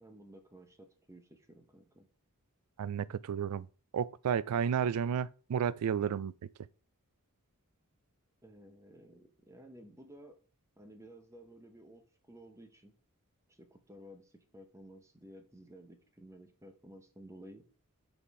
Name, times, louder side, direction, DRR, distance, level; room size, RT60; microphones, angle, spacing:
voice 1, 0.0-2.1 8.4-10.4 10.8-13.0 13.5-17.7, right 1 dB, 15° right, 0.8 m, -54 dB
voice 2, 2.8-3.7 3.9-6.3, right 7 dB, 90° right, 0.3 m, -32 dB
5.7 x 4.2 x 4.7 m
head